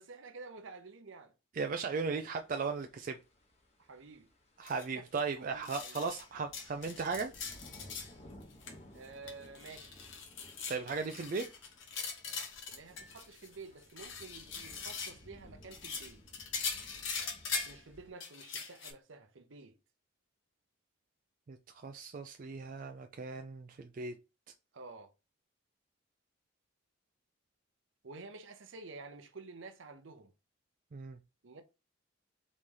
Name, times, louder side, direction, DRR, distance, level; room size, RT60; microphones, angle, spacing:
voice 1, 0.0-1.3 3.8-4.3 4.9-5.1 5.4-6.0 8.9-10.0 12.7-16.2 17.5-19.8 24.7-25.1 28.0-30.3 31.4-31.6, right 3 dB, 70° right, 0.7 m, -50 dB
voice 2, 1.5-3.2 4.6-7.3 10.7-11.5 21.5-24.1 30.9-31.2, right 4 dB, 40° right, 0.3 m, -37 dB
sound 1, 2.0-18.1, equal, 30° left, 1.0 m, -59 dB
sound 2, 4.6-4.8 5.2-5.3 5.6-6.2 6.5-8.1 8.4-8.7 9.0-13.6 13.8-15.2 15.6-17.8 18.2-18.9, left 5 dB, 70° left, 1.1 m, -41 dB
4.1 x 3.1 x 3.7 m
head